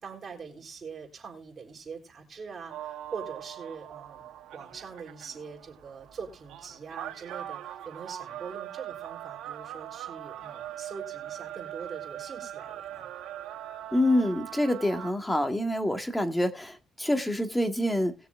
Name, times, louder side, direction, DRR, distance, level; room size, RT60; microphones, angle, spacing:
voice 1, 0.0-4.2 4.5-13.1, right 5 dB, 45° right, 3.8 m, -43 dB
sound 1, 2.7-15.1, right 12 dB, 90° right, 1.2 m, -41 dB
voice 2, 13.9-18.1, left 1 dB, 10° left, 1.8 m, -26 dB
20.0 x 6.8 x 2.5 m
cardioid pair, 90°, 0 cm